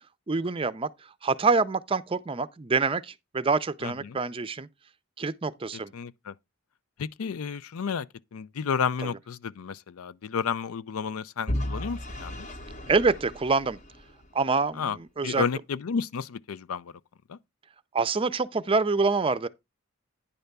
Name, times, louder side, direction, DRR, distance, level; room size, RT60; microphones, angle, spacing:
voice 1, 0.3-4.7 5.2-5.9 12.9-13.8 14.3-15.4 17.9-19.5, right 4 dB, 25° right, 0.5 m, -26 dB
voice 2, 3.8-4.2 5.9-6.3 7.0-12.5 14.8-15.0 15.2-16.9 17.3-17.4, left 6 dB, 90° left, 0.5 m, -32 dB
Vehicle / Engine, 11.5-14.5, left 1 dB, 35° left, 0.9 m, -35 dB
10.0 x 3.4 x 6.6 m
head